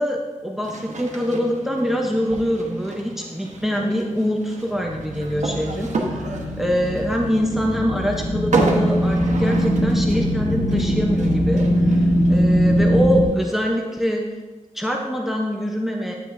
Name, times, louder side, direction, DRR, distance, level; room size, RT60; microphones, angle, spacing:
voice 1, 0.0-14.3 14.7-16.1, equal, ahead, 1 dB, 0.7 m, -24 dB
sound 1, 0.6-13.5, right 3 dB, 75° right, 1.1 m, -31 dB
sound 2, 4.7-13.2, equal, 40° left, 1.1 m, -21 dB
9.5 x 9.2 x 2.6 m, 1.3 s
wide cardioid pair, 155°, 12 cm